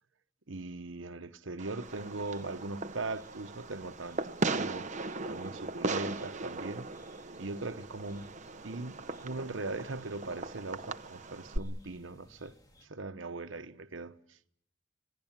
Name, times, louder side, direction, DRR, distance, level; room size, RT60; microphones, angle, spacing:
voice 1, 0.5-4.9 5.2-6.9 7.4-8.3 8.6-12.5 12.8-14.4, right 2 dB, 75° right, 1.1 m, -40 dB
Fireworks, 1.6-11.6, right 3 dB, 40° right, 0.9 m, -38 dB
sound 1, 1.8-12.9, left 1 dB, 20° left, 2.2 m, -63 dB
27.0 x 19.0 x 7.4 m
head